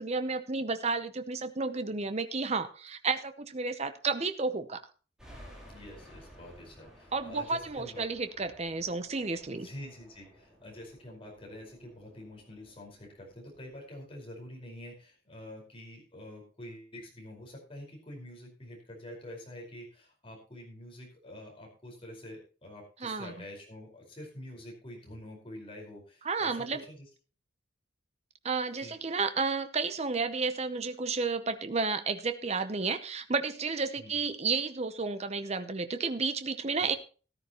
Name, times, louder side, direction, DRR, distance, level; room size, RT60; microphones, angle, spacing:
voice 1, 0.0-4.8 7.1-9.7 23.0-23.3 26.2-26.8 28.4-37.0, right 4 dB, 35° right, 10 dB, 0.8 m, -32 dB
sound 1, 5.2-13.7, equal, 5° right, 3.6 m, -55 dB
voice 2, 5.6-8.0 9.6-27.1 28.8-28.9 34.0-34.2, left 1 dB, 30° left, -1 dB, 4.9 m, -47 dB
14.0 x 13.0 x 3.0 m, 0.36 s
head